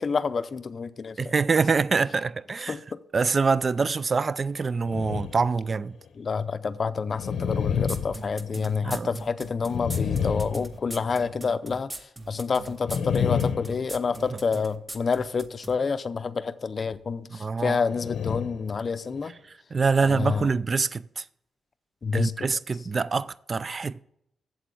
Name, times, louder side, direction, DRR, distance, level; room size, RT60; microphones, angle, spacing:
voice 1, 0.0-1.3 2.7-3.0 6.2-11.9 12.3-19.3 20.0-20.5 22.0-22.3, left 5 dB, 35° left, 0.5 m, -28 dB
voice 2, 1.2-2.8 3.1-6.0 8.8-9.1 17.3-17.8 19.7-21.2 22.1-24.0, right 4 dB, 30° right, 0.3 m, -25 dB
sound 1, 4.8-5.6 6.0-6.1 7.1-9.0 9.6-11.3 12.8-14.5 17.8-18.7 19.1-19.3 20.0-20.4, left 7 dB, 75° left, 0.7 m, -30 dB
sound 2, 7.9-15.8, right 1 dB, 10° right, 0.7 m, -39 dB
8.2 x 7.7 x 7.7 m
wide cardioid pair, 170°, 0 cm